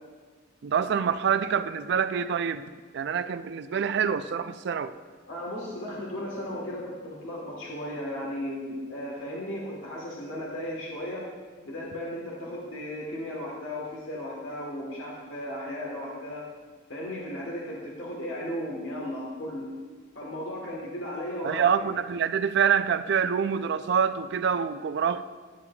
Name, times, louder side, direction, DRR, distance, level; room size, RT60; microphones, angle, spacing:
voice 1, 0.6-2.6 2.9-4.9 21.4-25.2, right 7 dB, 55° right, 12 dB, 0.3 m, -26 dB
voice 2, 5.3-11.3 11.6-16.4 16.9-19.7 20.1-21.7, left 1 dB, 65° left, -4 dB, 1.3 m, -35 dB
10.0 x 8.3 x 2.3 m, 1.5 s
head